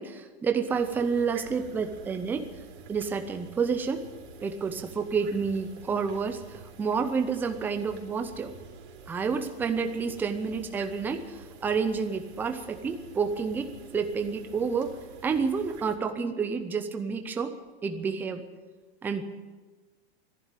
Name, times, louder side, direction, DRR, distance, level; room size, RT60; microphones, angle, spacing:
voice 1, 0.0-2.5 2.9-4.1 4.4-8.5 9.1-15.0 15.2-17.5 17.8-18.5 19.0-19.2, right 5 dB, 5° right, 7 dB, 0.5 m, -29 dB
sound 1, 0.7-16.0, right 4 dB, 90° right, 3.4 m, -48 dB
14.0 x 11.0 x 9.0 m, 1.3 s
supercardioid pair, 160°, 32 cm